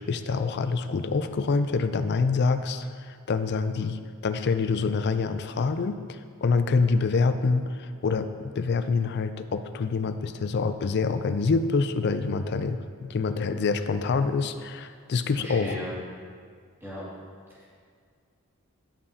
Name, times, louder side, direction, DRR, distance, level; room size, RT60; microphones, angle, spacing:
voice 1, 0.0-15.8, left 4 dB, 50° left, 10 dB, 0.4 m, -26 dB
voice 2, 15.4-15.9 16.8-17.0 17.5-17.7, equal, 10° right, -9 dB, 2.2 m, -37 dB
11.5 x 7.0 x 2.8 m, 2.1 s
head